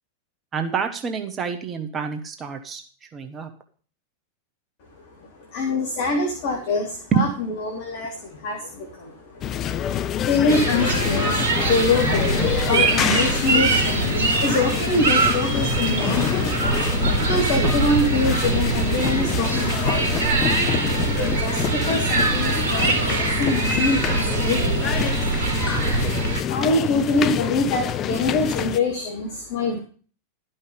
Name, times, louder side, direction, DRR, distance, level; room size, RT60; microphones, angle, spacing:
voice 1, 0.5-2.8 3.1-3.5 7.1-7.3, right 6 dB, 25° right, 6 dB, 1.1 m, -26 dB
voice 2, 5.4-20.2 21.1-25.6 26.2-29.8, left 3 dB, 50° left, 2 dB, 1.8 m, -25 dB
sound 1, 9.4-28.8, left 11 dB, 30° left, 0.4 m, -27 dB
sound 2, 10.5-26.4, right 4 dB, 55° right, 1.9 m, -23 dB
12.0 x 5.6 x 5.2 m, 0.42 s
figure-of-eight pair, 90°, 0 cm